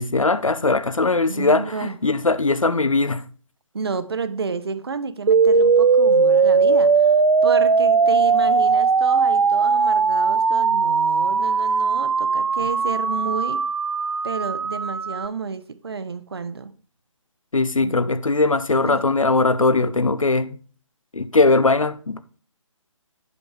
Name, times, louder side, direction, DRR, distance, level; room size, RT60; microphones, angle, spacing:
voice 1, 0.0-3.2 17.5-20.6 21.1-22.4, left 3 dB, 75° left, 0.6 m, -20 dB
voice 2, 1.3-2.0 3.7-7.1 7.4-13.6 14.2-16.7 17.8-17.9 18.8-19.1, right 5 dB, 50° right, 0.8 m, -30 dB
sound 1, 5.3-15.3, right 5 dB, 70° right, 0.4 m, -18 dB
11.0 x 5.1 x 4.5 m
figure-of-eight pair, 145°, 17 cm